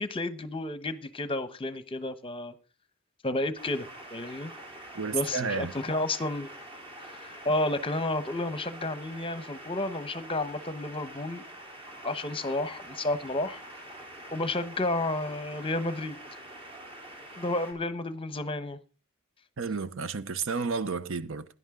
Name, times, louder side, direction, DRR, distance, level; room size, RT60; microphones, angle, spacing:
voice 1, 0.0-2.5 3.2-4.5 5.1-6.5 7.1-11.4 12.0-13.6 14.3-16.2 17.4-18.8, left 2 dB, 25° left, 1.0 m, -31 dB
sound 1, 3.6-17.7, right 1 dB, 25° right, 3.6 m, -45 dB
voice 2, 4.9-5.7 19.6-21.4, right 5 dB, 65° right, 0.8 m, -31 dB
16.5 x 11.0 x 3.7 m
head